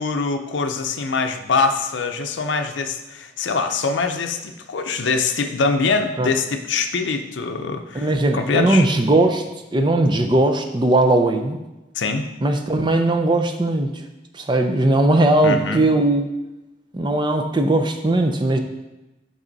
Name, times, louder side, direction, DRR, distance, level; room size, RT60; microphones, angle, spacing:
voice 1, 0.0-8.9 12.0-12.3 15.4-15.8, left 4 dB, 85° left, 6 dB, 0.6 m, -23 dB
voice 2, 7.9-9.4 9.7-11.6 12.4-14.0 14.3-16.3 16.9-18.6, right 2 dB, 25° right, 5 dB, 0.5 m, -18 dB
6.0 x 5.5 x 4.0 m, 1.0 s
head